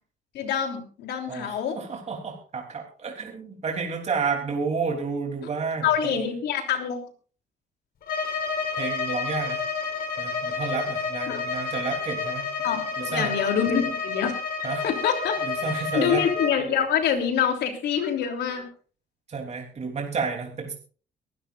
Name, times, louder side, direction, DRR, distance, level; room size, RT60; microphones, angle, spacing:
voice 1, 0.3-1.8 5.8-7.0 11.3-11.4 12.6-14.3 14.8-15.3 15.7-18.7, left 8 dB, 75° left, 4 dB, 3.3 m, -26 dB
voice 2, 1.3-6.2 8.2-8.4 8.8-9.6 10.2-12.5 13.0-13.3 14.6-14.8 15.4-16.2 19.3-20.7, right 5 dB, 40° right, 1 dB, 3.4 m, -31 dB
Bowed string instrument, 8.0-16.6, left 4 dB, 60° left, 4.4 m, -30 dB
23.5 x 12.5 x 2.5 m, 0.39 s
cardioid pair, 105°, 17 cm